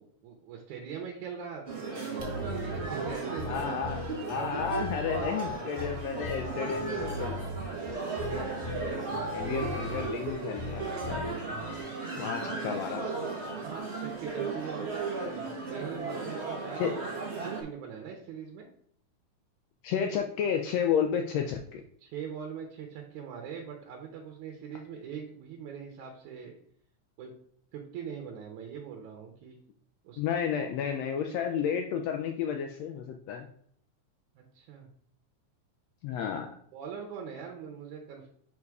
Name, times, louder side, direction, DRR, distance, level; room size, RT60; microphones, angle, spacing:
voice 1, 0.0-3.7 4.3-5.0 13.5-15.0 15.7-17.0 17.3-18.7 22.0-26.5 27.2-27.3 27.7-29.6 30.0-30.2 30.6-30.7 34.4-34.9 36.7-38.3, right 7 dB, 80° right, 1 dB, 2.3 m, -42 dB
sound 1, 1.6-17.6, right 3 dB, 35° right, 1.2 m, -35 dB
sound 2, 2.2-11.8, left 1 dB, 65° left, 2.4 m, -39 dB
voice 2, 3.5-7.4 9.3-11.2 12.2-13.1 16.8-16.9 19.8-21.8 30.2-33.5 36.0-36.5, left 7 dB, 80° left, 4 dB, 1.5 m, -32 dB
5.3 x 4.8 x 4.7 m, 0.63 s
omnidirectional pair, 3.5 m